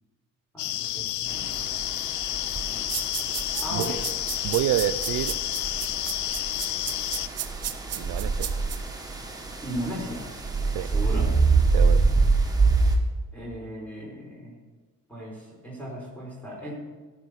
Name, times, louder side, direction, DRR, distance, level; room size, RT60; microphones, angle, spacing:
voice 1, 0.5-1.6 2.7-2.9 3.6-4.0 9.6-10.3 10.8-11.3 13.3-14.6 15.1-16.7, equal, 5° left, -5 dB, 4.2 m, -36 dB
sound 1, 0.6-7.3, left 15 dB, 75° left, 0.5 m, -30 dB
sound 2, 1.3-12.9, right 4 dB, 10° right, 1.7 m, -26 dB
sound 3, 2.9-8.8, right 10 dB, 55° right, 1.0 m, -33 dB
voice 2, 4.4-5.4 8.0-8.5 10.7-10.9 11.7-12.0, right 14 dB, 85° right, 17 dB, 0.5 m, -27 dB
13.5 x 6.2 x 6.7 m, 1.4 s
cardioid pair, 90°, 30 cm